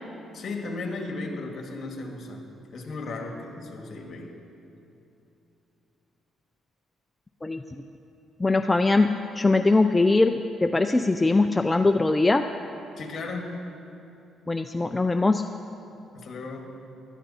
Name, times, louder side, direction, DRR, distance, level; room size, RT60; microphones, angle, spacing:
voice 1, 0.3-2.4 2.7-4.3 13.0-13.6 16.1-16.7, left 3 dB, 55° left, 2 dB, 2.0 m, -35 dB
voice 2, 8.4-9.1 9.3-10.3 10.6-12.4 14.5-15.4, left 3 dB, 15° left, 7 dB, 0.5 m, -21 dB
16.0 x 12.5 x 4.3 m, 2.8 s
cardioid pair, 90°, 0 cm